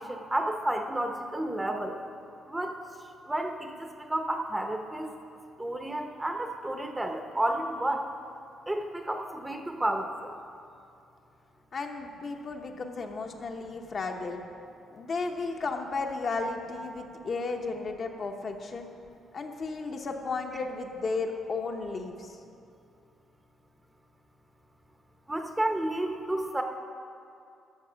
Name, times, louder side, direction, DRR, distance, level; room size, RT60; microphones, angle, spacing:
voice 1, 0.0-2.0 2.5-2.7 3.3-5.1 5.6-8.0 8.7-10.3 25.3-26.6, right 1 dB, 15° right, 5 dB, 0.8 m, -31 dB
voice 2, 11.7-14.4 14.9-18.9 19.3-22.3, left 3 dB, 50° left, 2 dB, 1.0 m, -34 dB
13.0 x 6.4 x 5.1 m, 2.5 s
cardioid pair, 90°, 0 cm